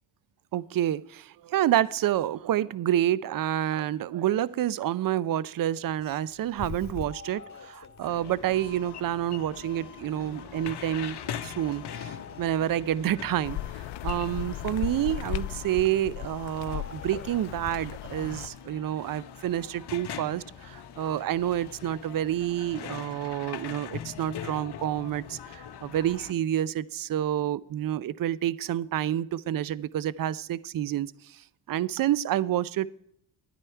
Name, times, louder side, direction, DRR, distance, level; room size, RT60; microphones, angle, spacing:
voice 1, 0.5-31.4 31.7-32.9, right 12 dB, 45° right, 20 dB, 0.6 m, -28 dB
Doorbell, 5.8-18.6, left 6 dB, 35° left, 1.8 m, -47 dB
sound 1, 8.0-26.3, left 9 dB, 55° left, 1.0 m, -42 dB
sound 2, 13.4-18.5, left 14 dB, 70° left, 0.6 m, -36 dB
12.0 x 9.9 x 4.5 m, 0.70 s
supercardioid pair, 60°, 49 cm